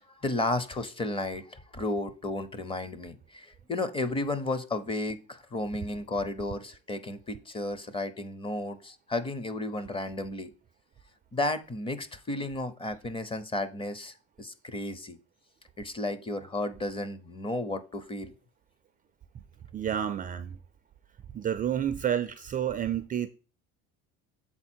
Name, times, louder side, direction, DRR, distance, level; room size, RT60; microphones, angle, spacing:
voice 1, 0.0-10.5 11.3-15.2 15.8-18.3, left 2 dB, 15° left, 0.6 m, -33 dB
voice 2, 19.7-20.6 21.3-23.3, right 9 dB, 25° right, 0.3 m, -30 dB
7.2 x 4.2 x 4.3 m
cardioid pair, 135°, 31 cm